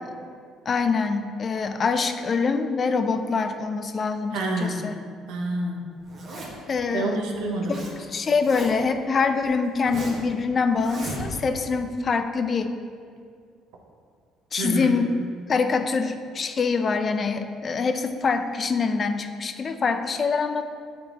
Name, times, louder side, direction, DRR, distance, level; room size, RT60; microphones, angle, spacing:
voice 1, 0.7-5.0 6.7-7.2 7.7-7.8 8.1-12.7 14.5-15.1 15.5-20.6, left 4 dB, 40° left, 8 dB, 0.4 m, -24 dB
voice 2, 4.3-4.9 5.3-5.9 6.9-7.8 14.6-14.9, right 2 dB, 85° right, 0 dB, 0.8 m, -27 dB
Zipper (clothing), 6.0-6.7 7.3-7.9 8.2-9.0 9.4-10.3 10.8-11.6, right 2 dB, 55° right, 1.4 m, -37 dB
9.1 x 3.5 x 2.9 m, 2.1 s
supercardioid pair, 85°, 0 cm